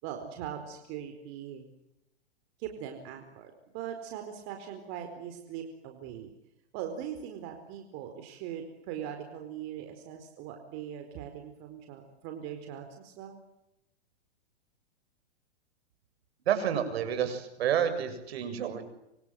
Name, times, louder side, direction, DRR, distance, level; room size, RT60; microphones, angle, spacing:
voice 1, 0.0-1.7 2.6-6.3 6.7-13.4, right 9 dB, 40° right, 5 dB, 4.4 m, -41 dB
voice 2, 16.5-18.9, right 9 dB, 65° right, 9 dB, 7.1 m, -29 dB
28.0 x 26.5 x 7.8 m, 0.86 s
hypercardioid pair, 140°, 33 cm